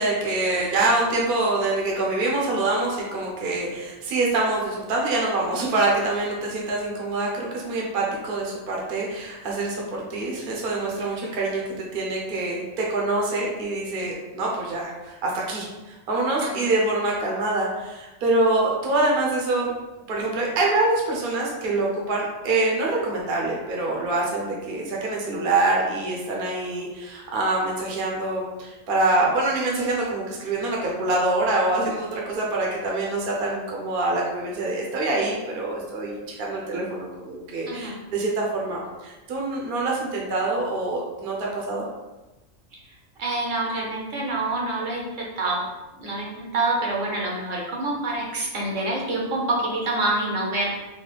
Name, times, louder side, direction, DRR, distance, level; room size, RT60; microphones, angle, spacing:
voice 1, 0.0-11.6 11.9-19.7 20.1-41.8, right 2 dB, 50° right, -2 dB, 0.8 m, -25 dB
voice 2, 43.2-45.6 46.0-50.7, right 2 dB, 70° right, -3 dB, 1.2 m, -26 dB
4.0 x 2.2 x 3.3 m, 1.1 s
omnidirectional pair, 1.4 m